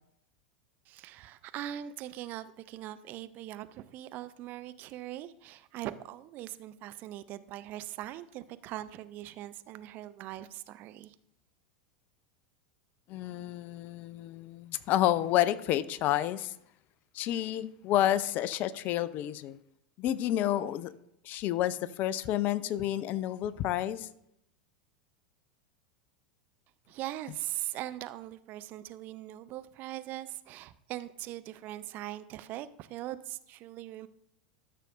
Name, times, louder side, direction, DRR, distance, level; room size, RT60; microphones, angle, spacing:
voice 1, 0.9-11.1 26.9-34.1, right 14 dB, 40° right, 0.5 m, -41 dB
voice 2, 13.1-16.5 17.1-19.6 20.0-20.9 21.2-24.1, left 12 dB, 40° left, 0.4 m, -30 dB
13.5 x 6.6 x 2.5 m
figure-of-eight pair, 85°, 5 cm